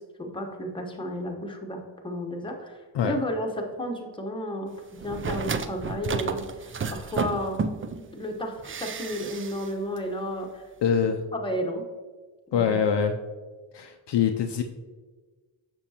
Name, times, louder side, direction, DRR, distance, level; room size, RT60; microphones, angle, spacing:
voice 1, 0.2-2.8 3.0-7.6 7.9-10.6 11.0-11.8, equal, 10° left, 1 dB, 1.1 m, -33 dB
sound 1, 5.0-8.0 8.6-9.7 10.0-10.1, right 5 dB, 30° right, 0.3 m, -31 dB
voice 2, 10.8-11.2 12.5-13.2 13.7-14.6, left 7 dB, 60° left, 5 dB, 0.6 m, -24 dB
6.9 x 6.0 x 2.8 m, 1.4 s
cardioid pair, 75°, 50 cm